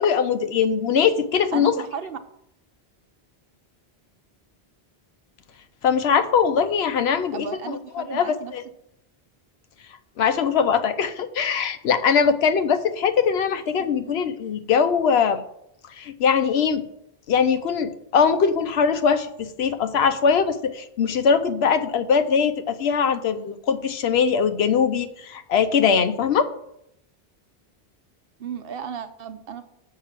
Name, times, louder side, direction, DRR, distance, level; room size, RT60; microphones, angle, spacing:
voice 1, 0.0-1.7 5.8-8.6 10.2-15.4 16.0-16.8 17.3-26.5, left 6 dB, 80° left, 11 dB, 0.9 m, -21 dB
voice 2, 1.5-2.2 7.3-8.5 13.8-14.1 28.4-29.6, right 7 dB, 65° right, 9 dB, 0.9 m, -34 dB
6.7 x 5.6 x 7.3 m, 0.78 s
omnidirectional pair, 1.1 m